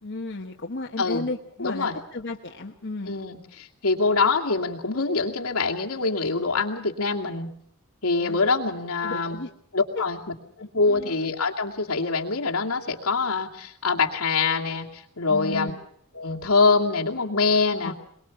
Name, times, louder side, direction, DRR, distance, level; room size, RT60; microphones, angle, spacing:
voice 1, 0.0-3.1 8.1-8.4 9.0-9.5 10.0-10.1 10.9-11.1 15.3-15.8 17.8-17.9, left 3 dB, 55° left, 1 dB, 1.4 m, -33 dB
voice 2, 1.6-2.0 3.1-7.5 8.0-9.4 9.7-10.2 10.6-15.7 16.1-17.9, left 4 dB, 85° left, 0 dB, 2.5 m, -24 dB
23.0 x 21.5 x 7.3 m, 0.66 s
head